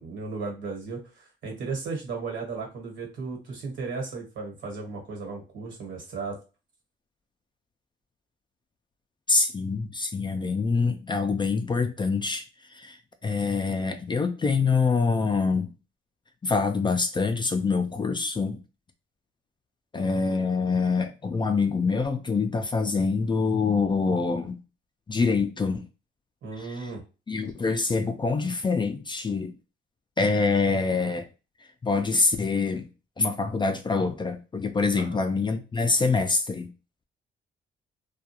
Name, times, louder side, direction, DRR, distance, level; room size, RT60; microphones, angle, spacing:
voice 1, 0.0-6.4 26.4-27.0 34.9-35.2, right 4 dB, 70° right, 1.2 m, -35 dB
voice 2, 9.3-12.4 12.7-13.0 13.2-15.7 16.4-18.6 19.9-24.6 25.1-25.9 26.6-26.9 27.3-29.5 30.2-31.3 31.8-32.8 33.2-36.7, left 4 dB, 25° left, 0.3 m, -25 dB
2.3 x 2.3 x 2.8 m
cardioid pair, 90°, 20 cm